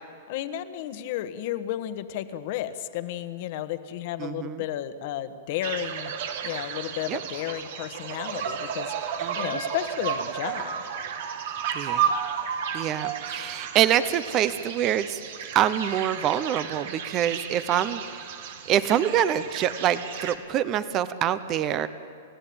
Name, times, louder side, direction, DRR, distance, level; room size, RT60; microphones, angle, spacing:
voice 1, 0.3-6.1 6.4-10.8, left 12 dB, 45° left, 10 dB, 1.3 m, -33 dB
voice 2, 4.2-4.6 7.1-7.2 9.2-9.6 11.7-12.1 12.7-15.2 15.5-18.0 18.7-21.9, right 10 dB, 25° right, 14 dB, 0.7 m, -25 dB
sound 1, 5.6-20.4, right 8 dB, 55° right, 1.8 m, -33 dB
29.5 x 16.0 x 8.8 m, 2.5 s
hypercardioid pair, 155°, 0 cm